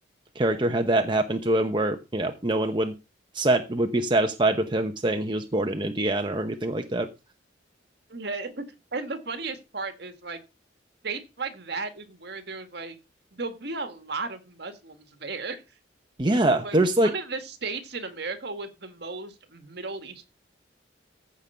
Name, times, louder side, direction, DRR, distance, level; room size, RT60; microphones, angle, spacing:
voice 1, 0.4-2.9 3.3-7.1 16.2-17.1, right 1 dB, 25° right, 5 dB, 0.9 m, -24 dB
voice 2, 8.1-8.6 8.9-10.4 11.0-13.0 13.3-15.6 16.6-20.3, right 3 dB, 60° right, 8 dB, 1.8 m, -35 dB
14.5 x 5.3 x 5.7 m, 0.28 s
head